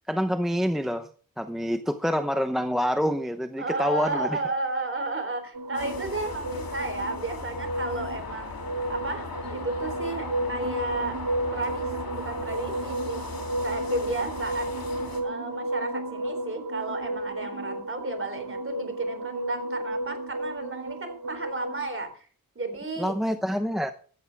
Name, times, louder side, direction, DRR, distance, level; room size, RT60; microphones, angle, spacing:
voice 1, 0.1-1.1 1.4-4.4 23.0-23.9, equal, ahead, 7 dB, 0.8 m, -26 dB
voice 2, 3.6-8.6 8.9-11.2 11.5-13.2 13.6-14.7 15.2-22.1 22.6-23.2, right 2 dB, 35° right, 7 dB, 3.8 m, -32 dB
sound 1, 5.5-22.0, right 1 dB, 65° right, 1.0 m, -33 dB
sound 2, 5.7-15.2, left 4 dB, 75° left, 3.2 m, -38 dB
16.0 x 13.5 x 3.5 m, 0.43 s
wide cardioid pair, 120°, 36 cm